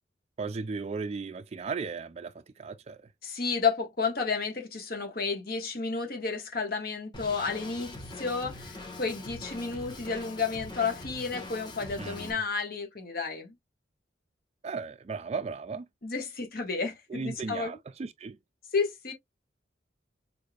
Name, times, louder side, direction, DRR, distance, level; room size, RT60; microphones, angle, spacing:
voice 1, 0.4-3.1 12.0-12.4 14.6-15.9 17.1-18.4, right 4 dB, 35° right, 0.3 m, -36 dB
voice 2, 3.2-13.5 16.0-17.7 18.7-19.1, left 5 dB, 50° left, 1.6 m, -31 dB
Drum kit, 7.1-12.3, left 2 dB, 25° left, 1.4 m, -43 dB
4.5 x 3.4 x 2.4 m
head